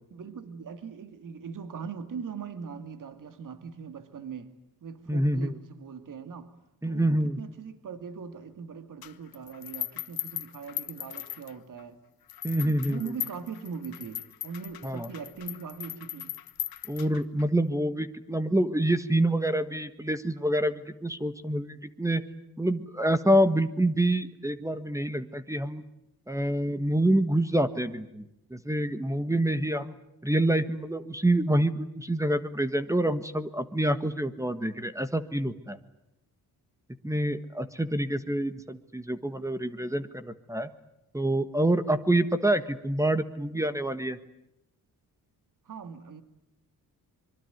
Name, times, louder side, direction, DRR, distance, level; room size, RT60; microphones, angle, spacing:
voice 1, 0.1-6.5 6.8-12.0 12.6-16.3 45.6-46.2, right 6 dB, 55° right, 2.5 m, -40 dB
voice 2, 5.1-5.5 6.8-7.4 12.4-13.0 14.8-15.1 16.9-22.2 22.6-25.8 26.3-29.9 30.2-35.8 37.0-40.7 41.1-44.2, right 1 dB, 10° right, 1.5 m, -27 dB
sound 1, 9.0-11.8 12.3-17.4, left 11 dB, 75° left, 1.3 m, -38 dB
25.0 x 23.5 x 9.5 m
cardioid pair, 90°, 37 cm